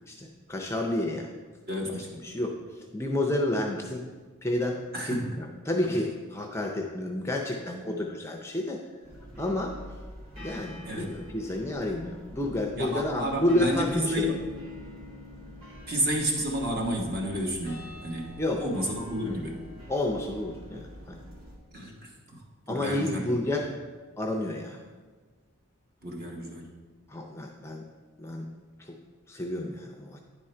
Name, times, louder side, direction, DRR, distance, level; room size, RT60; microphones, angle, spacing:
voice 1, 0.1-1.3 1.9-4.0 4.4-8.8 9.4-9.8 10.4-14.3 18.4-18.6 19.2-19.4 19.9-21.2 22.7-23.7 24.2-24.8 27.1-27.8 28.2-28.5 28.8-28.9 29.3-30.2, left 1 dB, 10° left, 2 dB, 0.4 m, -30 dB
voice 2, 1.7-2.1 4.9-5.4 5.8-5.9 10.8-11.1 12.8-14.4 15.9-18.3 18.6-19.6 21.7-23.3 26.0-26.7, equal, 45° right, 0 dB, 1.1 m, -31 dB
sound 1, 9.0-21.6, equal, 75° right, 2.2 m, -46 dB
Bass guitar, 14.3-17.9, left 2 dB, 20° right, 0.8 m, -49 dB
9.8 x 3.7 x 4.3 m, 1.4 s
head